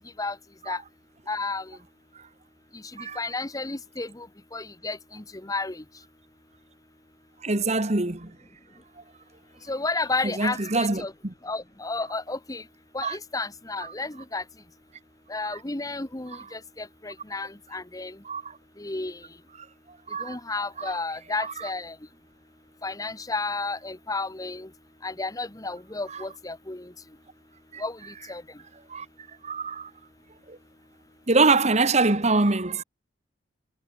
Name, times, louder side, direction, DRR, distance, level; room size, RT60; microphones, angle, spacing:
voice 1, 1.3-1.6 3.2-4.3 4.5-5.8 9.7-11.1 11.4-12.6 12.9-14.4 15.3-18.1 18.8-19.2 20.2-21.9 22.8-24.7 25.0-26.8 27.8-28.0 28.3-28.4, left 3 dB, 20° left, 1.1 m, -32 dB
voice 2, 7.4-8.3 10.2-11.3 13.0-13.2 13.8-13.9 15.5-15.6 16.3-16.5 18.2-18.6 19.6-19.7 20.1-20.4 20.8-21.0 21.4-21.7 26.1-26.2 27.7-27.8 28.9-29.0 29.4-29.9 30.5-30.6 31.3-32.8, right 3 dB, 35° right, 1.6 m, -25 dB
head